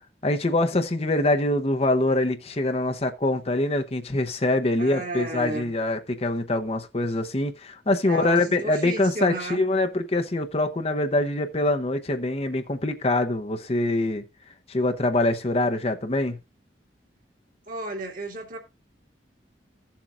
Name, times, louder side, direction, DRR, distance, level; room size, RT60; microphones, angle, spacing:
voice 1, 0.2-14.2 14.7-16.4, left 2 dB, 35° left, 0.8 m, -24 dB
voice 2, 4.8-5.7 8.0-9.6 17.7-18.6, right 2 dB, 50° right, 2.4 m, -33 dB
15.0 x 7.3 x 2.5 m
head